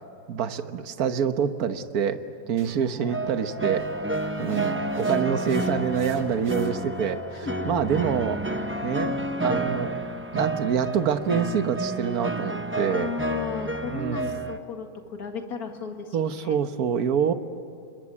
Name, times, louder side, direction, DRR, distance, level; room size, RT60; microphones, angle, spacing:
voice 1, 0.3-2.2 2.5-3.9 4.4-8.4 8.8-9.9 10.3-13.1 13.9-14.2 16.1-17.3, right 7 dB, 55° right, 9 dB, 1.5 m, -26 dB
sound 1, 2.6-7.0, right 3 dB, 35° right, 2.2 m, -49 dB
sound 2, 3.0-9.7, left 7 dB, 20° left, 1.3 m, -41 dB
sound 3, 3.1-14.6, right 2 dB, 20° right, 0.3 m, -30 dB
voice 2, 12.9-16.6, left 5 dB, 50° left, 4 dB, 2.4 m, -35 dB
27.5 x 22.0 x 9.9 m, 2.5 s
omnidirectional pair, 2.1 m